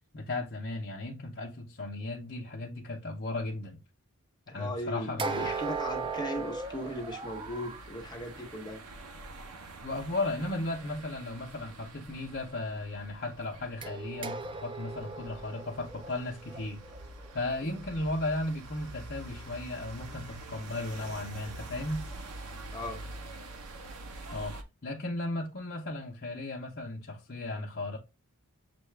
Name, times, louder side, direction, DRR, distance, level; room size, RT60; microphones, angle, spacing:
voice 1, 0.1-3.8 4.5-5.6 9.8-16.8 17.3-22.0 24.3-24.5 24.8-28.0, left 2 dB, 45° left, 0.8 m, -35 dB
voice 2, 4.6-8.8 22.7-23.0, equal, 20° left, 1.0 m, -38 dB
sound 1, 5.2-7.9 13.8-17.8, right 4 dB, 20° right, 0.3 m, -38 dB
sound 2, 5.3-24.6, right 2 dB, 85° right, 0.8 m, -46 dB
6.7 x 2.3 x 3.2 m
head